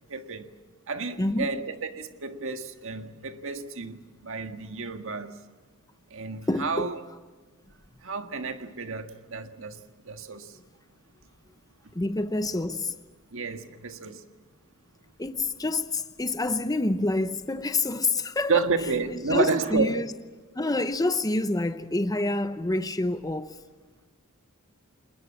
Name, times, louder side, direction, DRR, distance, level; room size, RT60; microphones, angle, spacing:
voice 1, 0.1-0.5 0.9-5.3 6.1-7.0 8.0-10.6 13.3-14.2 18.5-20.1, right 4 dB, 60° right, 1.7 m, -31 dB
voice 2, 1.2-1.6 6.5-6.9 11.9-12.9 15.2-18.7 19.1-20.1 20.6-23.6, left 2 dB, 15° left, 0.8 m, -27 dB
30.0 x 21.0 x 7.4 m
head